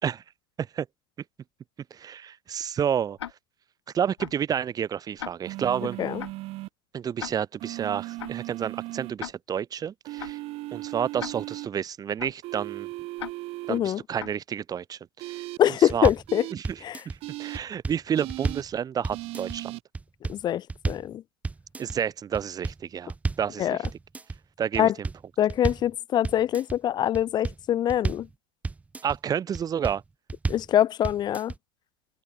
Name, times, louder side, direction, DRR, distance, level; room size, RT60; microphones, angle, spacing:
voice 1, 1.9-3.2 3.9-6.0 6.9-10.4 10.7-12.9 13.7-15.5 15.9-16.1 16.5-16.8 17.1-19.7 21.8-23.9 24.6-24.9 29.0-30.0, right 8 dB, 25° right, 3.7 m, -30 dB
Tick-tock, 3.2-3.3 4.2-4.3 5.2-5.3 6.2-6.3 7.2-7.3 8.2-8.3 9.2-9.3 10.2-10.3 11.2-11.3 12.2-12.3 13.2-13.3 14.2-14.3, left 11 dB, 80° left, 5.0 m, -36 dB
sound 1, 5.4-6.7 7.6-9.1 10.0-11.7 12.4-13.8 15.2-15.6 16.3-16.5 17.2-17.6 18.1-18.6 19.1-19.8, right 19 dB, 45° right, 1.4 m, -37 dB
voice 2, 13.7-14.0 15.6-16.4 16.8-17.0 20.3-21.2 23.6-23.8 24.8-24.9 25.4-28.3 30.5-31.5, left 11 dB, 30° left, 1.0 m, -24 dB
sound 2, 15.9-16.3 16.6-17.2 17.5-18.7 19.0-19.6 19.9-20.4 20.7-21.1 21.4-22.0 22.3-23.5 23.8-24.4 24.7-25.9 26.2-26.8 27.1-28.3 28.6-29.2 29.5-30.0 30.3-30.7 31.0-31.6, right 3 dB, 10° right, 0.7 m, -31 dB
open air
hypercardioid pair, 110°, 14 cm